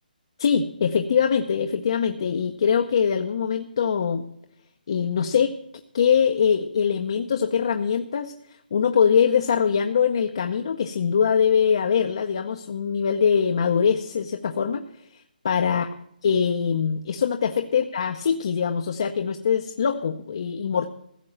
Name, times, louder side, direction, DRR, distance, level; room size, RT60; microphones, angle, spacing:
voice 1, 0.4-4.2 4.9-5.6 5.9-8.3 8.7-14.9 15.4-15.9 16.2-20.9, left 7 dB, 35° left, 5 dB, 0.7 m, -22 dB
15.5 x 6.8 x 8.7 m, 0.74 s
hypercardioid pair, 175°, 5 cm